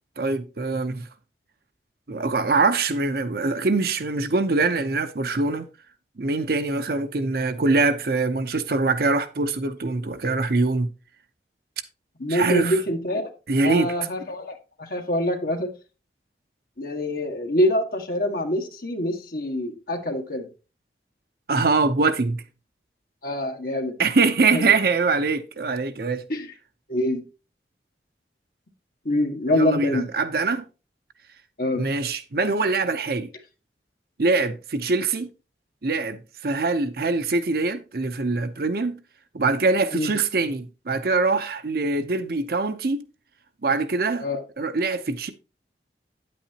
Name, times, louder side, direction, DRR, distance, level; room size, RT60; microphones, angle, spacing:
voice 1, 0.2-1.1 2.1-5.7 6.2-10.9 12.3-12.7 13.5-13.9 21.5-22.4 24.0-26.2 29.5-30.6 31.7-33.3 34.2-35.3 35.8-36.2 36.4-39.0 39.3-43.0 43.6-44.3 44.6-45.3, right 3 dB, 55° right, 0.7 m, -23 dB
voice 2, 12.2-13.3 13.6-14.5 14.8-15.7 16.8-20.5 23.2-23.9 24.5-24.7 26.3-26.5 26.9-27.2 29.0-30.1 31.6-31.9 39.9-40.1 44.2-44.4, left 1 dB, 55° left, 1.5 m, -25 dB
9.3 x 8.5 x 2.8 m
head